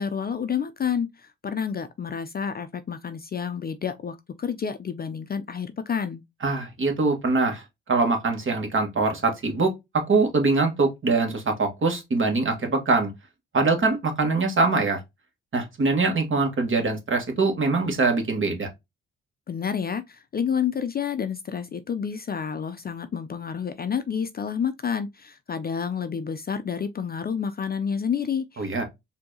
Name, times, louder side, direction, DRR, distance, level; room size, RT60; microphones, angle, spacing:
voice 1, 0.0-6.2 19.5-28.8, left 7 dB, 30° left, 0.4 m, -29 dB
voice 2, 6.4-7.6 7.9-13.1 13.5-15.0 15.5-18.7 28.6-28.8, right 3 dB, 40° right, 1.6 m, -23 dB
4.4 x 2.8 x 2.7 m
cardioid pair, 90°, 30 cm